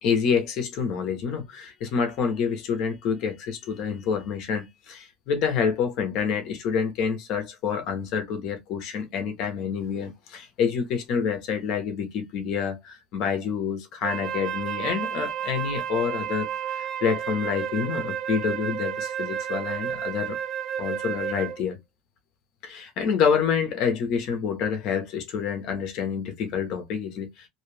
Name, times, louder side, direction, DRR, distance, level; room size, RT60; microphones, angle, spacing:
voice 1, 0.0-20.4 20.8-21.8 22.6-27.5, left 6 dB, 55° left, 1.0 m, -27 dB
Wind instrument woodwind instrument, 14.0-21.7, right 9 dB, 45° right, 0.4 m, -31 dB
2.7 x 2.4 x 3.2 m
cardioid pair, 150°, 0 cm